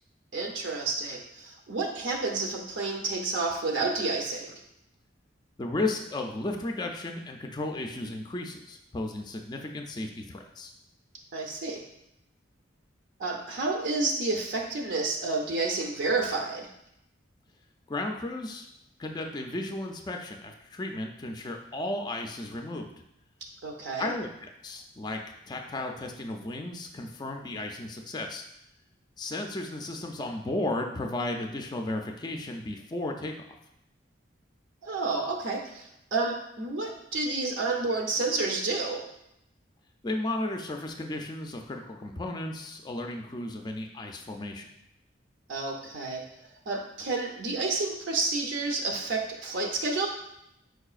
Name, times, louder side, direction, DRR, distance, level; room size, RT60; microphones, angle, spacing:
voice 1, 0.3-4.6 11.3-11.8 13.2-16.7 23.6-24.1 34.8-39.0 45.5-46.2 46.7-50.1, right 3 dB, 70° right, 1 dB, 0.7 m, -30 dB
voice 2, 5.6-10.7 17.9-18.6 19.0-22.9 24.0-25.2 25.5-28.4 29.2-33.6 40.0-44.7, left 2 dB, 20° left, 3 dB, 0.3 m, -34 dB
4.7 x 4.7 x 2.4 m, 0.80 s
head